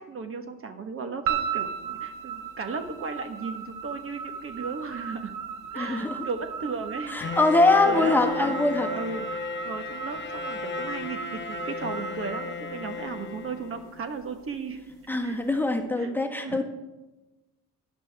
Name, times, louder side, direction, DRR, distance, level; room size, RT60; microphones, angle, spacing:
voice 1, 0.0-5.3 5.7-8.5 8.9-14.8 15.2-15.4 16.0-16.1 16.4-16.6, right 4 dB, 45° right, 7 dB, 1.2 m, -35 dB
sound 1, 1.3-13.6, right 8 dB, 75° right, 1.6 m, -36 dB
voice 2, 5.8-6.2 7.1-8.9 15.1-16.6, left 2 dB, 5° left, 2 dB, 1.4 m, -23 dB
Bowed string instrument, 7.2-14.1, left 5 dB, 35° left, 0.8 m, -35 dB
11.5 x 11.5 x 3.5 m, 1.1 s
supercardioid pair, 85°, 32 cm